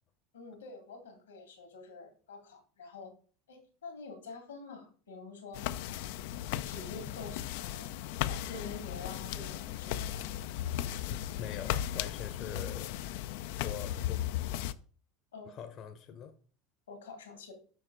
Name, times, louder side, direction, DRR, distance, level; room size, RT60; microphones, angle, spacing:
voice 1, 0.3-3.1 3.5-6.0 6.4-7.9 8.2-10.2 15.3-15.5 16.9-17.5, left 4 dB, 90° left, 2.1 m, -47 dB
sound 1, 5.5-14.7, left 12 dB, 70° left, 0.4 m, -36 dB
voice 2, 11.1-12.9 13.6-14.2 15.5-16.3, left 8 dB, 45° left, 0.8 m, -44 dB
6.9 x 5.9 x 3.8 m
hypercardioid pair, 85°, 0 cm